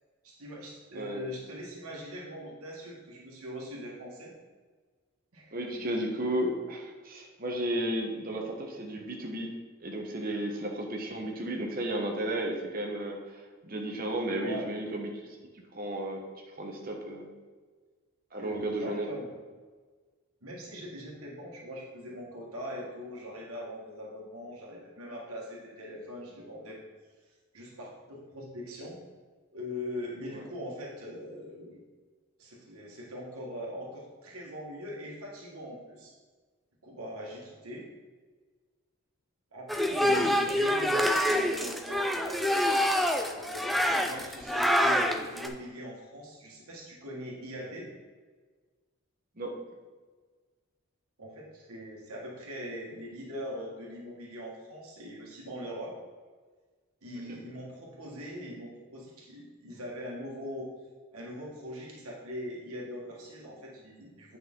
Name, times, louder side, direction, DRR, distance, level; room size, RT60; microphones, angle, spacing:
voice 1, 0.2-4.3 5.3-5.9 14.4-14.7 18.4-19.3 20.4-26.8 27.5-29.0 29.5-31.8 32.4-36.1 36.8-37.9 39.5-42.5 43.1-47.9 51.2-55.9 57.0-60.7 61.1-64.4, equal, 85° right, -3 dB, 1.6 m, -41 dB
voice 2, 5.5-9.5 9.8-15.1 15.7-16.2 16.6-17.3 18.3-19.1 30.3-30.4 40.0-40.2 49.4-49.5 57.3-57.4, right 1 dB, 40° right, 1 dB, 1.2 m, -33 dB
sound 1, 39.7-45.5, equal, ahead, 0.4 m, -26 dB
8.6 x 5.5 x 3.7 m, 1.4 s
head